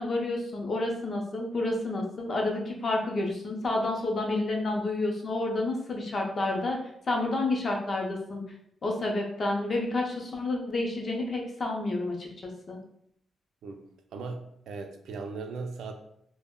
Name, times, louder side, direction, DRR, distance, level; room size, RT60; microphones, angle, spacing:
voice 1, 0.0-6.8 7.1-8.4 8.8-12.8, left 2 dB, 35° left, 0 dB, 0.5 m, -30 dB
voice 2, 14.1-15.9, right 4 dB, 75° right, 5 dB, 0.3 m, -38 dB
2.1 x 2.0 x 3.5 m, 0.72 s
wide cardioid pair, 155°, 0 cm